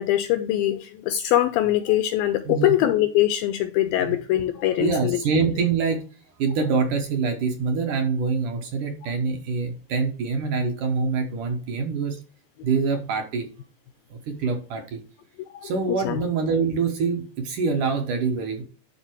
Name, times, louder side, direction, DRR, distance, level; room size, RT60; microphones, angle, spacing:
voice 1, 0.0-5.2 15.6-15.7 16.1-16.2, left 13 dB, 85° left, 2.1 m, -22 dB
voice 2, 4.8-6.0 6.4-12.2 12.6-13.5 14.1-15.0 15.6-18.6, right 5 dB, 65° right, 2.3 m, -25 dB
11.5 x 4.0 x 4.6 m
omnidirectional pair, 4.6 m